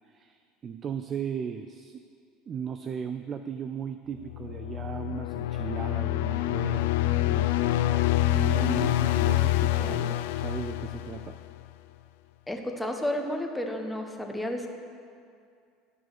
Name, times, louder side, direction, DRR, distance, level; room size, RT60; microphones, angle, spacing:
voice 1, 0.1-2.0 2.5-7.7 8.3-11.4, right 7 dB, 40° right, 9 dB, 0.4 m, -37 dB
sound 1, 4.2-11.6, left 15 dB, 80° left, 0.3 m, -26 dB
voice 2, 12.5-14.7, left 1 dB, 5° left, 3 dB, 1.1 m, -31 dB
12.0 x 4.7 x 6.1 m, 2.4 s
hypercardioid pair, 90°, 0 cm